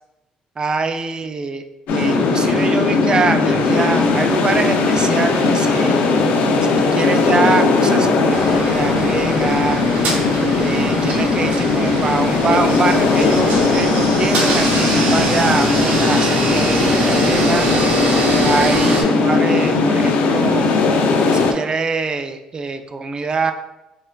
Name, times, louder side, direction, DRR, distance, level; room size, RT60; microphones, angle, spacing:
voice 1, 0.6-1.6 1.9-6.1 6.6-9.8 10.6-17.7 18.4-20.8 21.3-23.5, right 4 dB, 35° right, 8 dB, 0.3 m, -24 dB
sound 1, 1.9-21.5, left 3 dB, 75° left, 0.4 m, -17 dB
sound 2, 8.3-19.0, right 2 dB, 75° right, 0.7 m, -23 dB
4.2 x 2.5 x 2.2 m, 0.96 s
cardioid pair, 90°, 3 cm